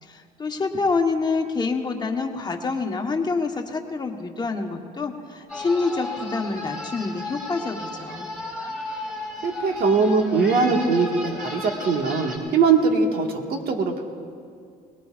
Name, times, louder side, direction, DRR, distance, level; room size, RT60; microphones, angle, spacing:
voice 1, 0.0-8.3, left 4 dB, 25° left, 3 dB, 1.3 m, -27 dB
sound 1, 5.5-12.4, left 2 dB, 5° right, 3.1 m, -34 dB
voice 2, 9.4-14.0, right 4 dB, 65° right, 2 dB, 1.8 m, -21 dB
22.0 x 20.0 x 2.5 m, 2.3 s
cardioid pair, 110°, 17 cm